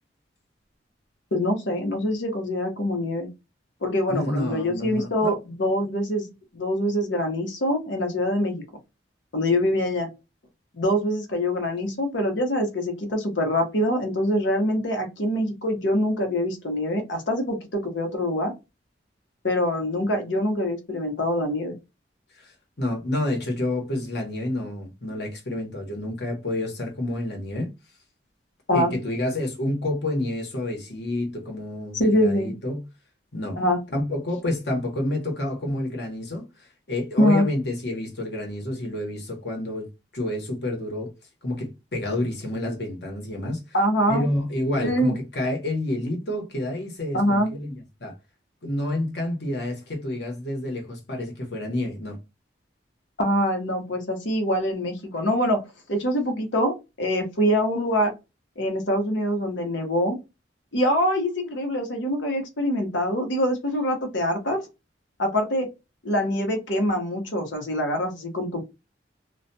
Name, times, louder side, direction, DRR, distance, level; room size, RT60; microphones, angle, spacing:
voice 1, 1.3-3.3 3.8-6.3 6.5-8.6 9.3-10.1 10.7-18.5 19.4-21.8 28.7-28.9 32.0-32.5 33.6-33.8 37.2-37.4 43.7-44.2 44.8-45.1 47.1-47.5 53.2-55.6 55.9-58.1 58.6-60.2 60.7-64.6 65.2-65.7 66.0-68.6, equal, 85° left, 1.0 m, -24 dB
voice 2, 4.1-5.4 22.4-22.5 22.8-27.7 28.7-32.8 33.3-33.6 33.9-39.9 40.1-41.1 41.4-43.6 44.1-48.2 48.6-52.2, left 1 dB, 65° left, 1.1 m, -29 dB
2.4 x 2.2 x 2.6 m
head